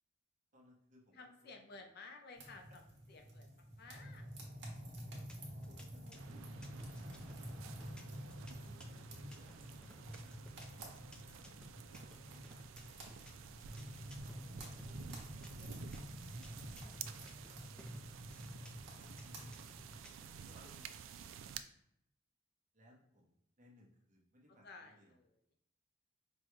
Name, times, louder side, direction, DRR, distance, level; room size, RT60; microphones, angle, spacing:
voice 1, 0.5-1.8 5.7-7.7 8.6-10.5 11.3-12.7 13.7-15.9 16.7-19.9 20.4-21.1 22.7-25.2, equal, 40° right, -2 dB, 0.9 m, -66 dB
voice 2, 1.1-2.8 3.1-4.8 15.5-15.8 24.5-25.3, left 3 dB, 55° left, 4 dB, 0.5 m, -56 dB
sound 1, 2.4-20.0, equal, 65° right, 1.1 m, -50 dB
sound 2, 5.0-20.7, left 1 dB, 5° left, 0.4 m, -60 dB
sound 3, 6.1-21.6, right 7 dB, 80° right, 0.3 m, -52 dB
5.2 x 2.2 x 3.1 m, 0.77 s
head